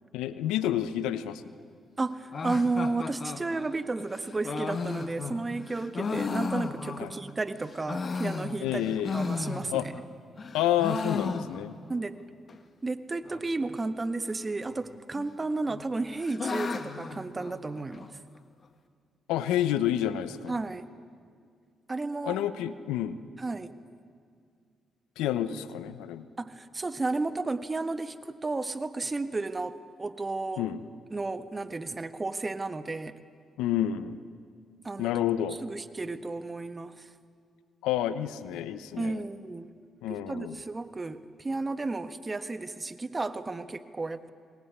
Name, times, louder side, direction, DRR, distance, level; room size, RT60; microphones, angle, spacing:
voice 1, 0.1-1.4 7.0-7.1 8.6-9.2 9.7-9.9 10.5-11.8 19.3-20.6 22.2-23.2 25.2-26.2 30.6-30.8 33.6-34.2 35.0-35.6 37.8-39.2 40.0-40.6, left 11 dB, 85° left, 13 dB, 0.9 m, -29 dB
voice 2, 2.0-8.8 9.1-9.9 11.9-12.2 12.8-18.1 20.5-20.9 21.9-22.4 23.4-23.7 26.4-30.6 31.1-33.2 34.8-35.1 35.6-37.1 39.0-39.7 40.1-44.3, right 3 dB, 30° right, 10 dB, 1.5 m, -33 dB
sound 1, 2.3-7.3 7.7-10.1 10.4-11.9 12.2-12.3 12.5-12.6 13.2-13.7 14.7-15.3 15.7-18.1, left 4 dB, 50° left, 1.7 m, -35 dB
23.5 x 20.0 x 9.6 m, 2.2 s
supercardioid pair, 55°, 0 cm